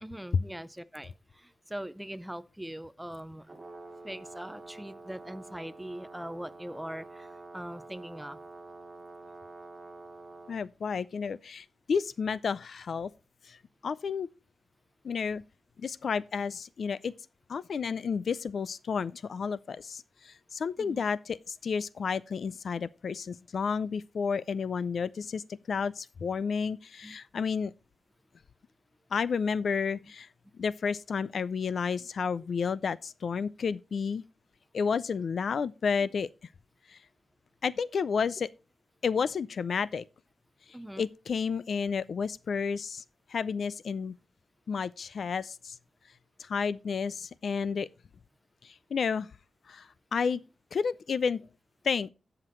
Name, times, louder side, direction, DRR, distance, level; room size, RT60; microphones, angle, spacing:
voice 1, 0.0-3.6 4.0-7.3 7.5-8.4 20.8-21.0 27.0-27.2 32.4-32.5 36.0-36.1 40.7-41.1, right 1 dB, 5° right, 0.5 m, -41 dB
Brass instrument, 3.4-10.6, right 2 dB, 25° right, 2.3 m, -48 dB
voice 2, 10.5-13.1 13.4-13.6 13.8-14.3 15.0-15.4 15.8-17.1 17.5-27.7 29.1-30.3 30.5-34.2 34.7-36.3 36.9-37.0 37.6-38.5 39.0-40.0 41.0-43.0 43.3-44.1 44.7-45.8 46.4-47.9 48.6-49.3 49.7-50.4 50.7-51.4 51.8-52.1, left 6 dB, 65° left, 0.4 m, -31 dB
16.5 x 5.9 x 3.1 m
wide cardioid pair, 135°, 0 cm